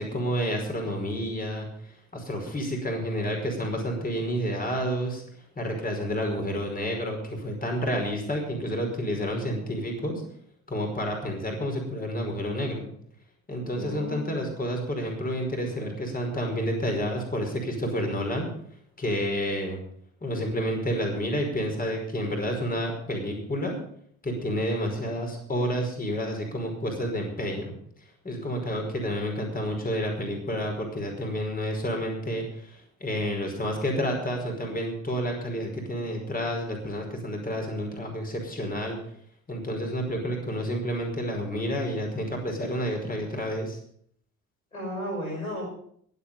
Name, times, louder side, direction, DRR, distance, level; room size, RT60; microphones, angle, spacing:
voice 1, 0.0-5.2 5.6-10.2 10.7-12.9 13.5-18.5 19.0-19.8 20.2-23.7 24.2-27.7 28.2-39.0 39.5-43.8, equal, 20° left, 3 dB, 5.3 m, -30 dB
voice 2, 13.5-14.4 44.7-45.6, left 1 dB, 90° left, -2 dB, 5.9 m, -34 dB
22.5 x 8.3 x 5.5 m, 0.63 s
figure-of-eight pair, 55°, 41 cm